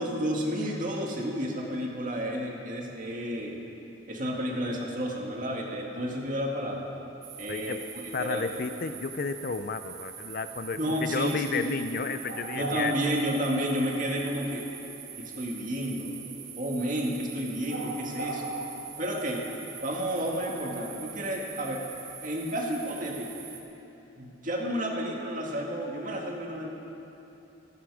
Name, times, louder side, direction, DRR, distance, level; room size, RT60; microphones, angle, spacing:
voice 1, 0.0-3.6 4.1-6.9 7.4-7.8 8.2-8.5 10.7-11.7 12.5-14.7 15.2-16.2 16.6-18.5 19.0-19.5 19.8-21.8 22.2-23.4 24.2-26.7, equal, 40° right, -1 dB, 2.1 m, -31 dB
sound 1, 7.2-23.6, right 4 dB, 75° right, 2.1 m, -41 dB
voice 2, 7.5-7.9 8.1-13.2, left 4 dB, 45° left, 10 dB, 0.5 m, -32 dB
27.0 x 9.7 x 4.9 m, 2.9 s
head